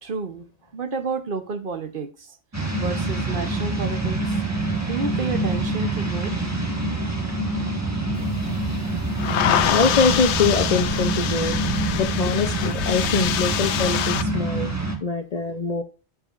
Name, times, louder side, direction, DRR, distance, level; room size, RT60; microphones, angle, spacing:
voice 1, 0.0-0.5 0.7-2.4 2.8-4.2 4.9-6.3, right 4 dB, 50° right, 8 dB, 1.0 m, -30 dB
sound 1, 2.5-15.0, right 2 dB, 15° right, 1.4 m, -26 dB
sound 2, 8.2-14.2, left 10 dB, 70° left, 0.9 m, -26 dB
voice 2, 9.7-11.6 11.9-14.7 15.0-15.8, left 4 dB, 50° left, 7 dB, 0.5 m, -23 dB
8.1 x 7.5 x 2.5 m, 0.35 s
omnidirectional pair, 1.2 m